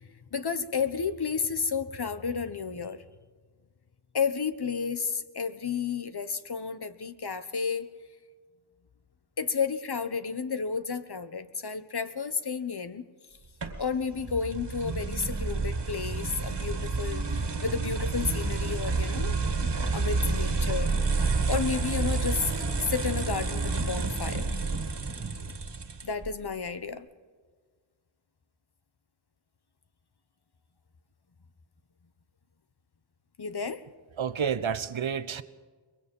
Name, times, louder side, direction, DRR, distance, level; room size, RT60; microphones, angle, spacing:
voice 1, 0.0-3.0 4.1-7.9 9.4-13.0 13.8-20.9 21.5-22.5 22.9-24.5 26.0-27.1 33.4-33.8, left 6 dB, 55° left, 11 dB, 1.2 m, -32 dB
sound 1, 13.6-26.3, right 4 dB, 60° right, 2.1 m, -29 dB
voice 2, 34.2-35.4, right 7 dB, 75° right, 14 dB, 1.0 m, -30 dB
23.0 x 22.0 x 5.5 m, 1.5 s
wide cardioid pair, 85°, 47 cm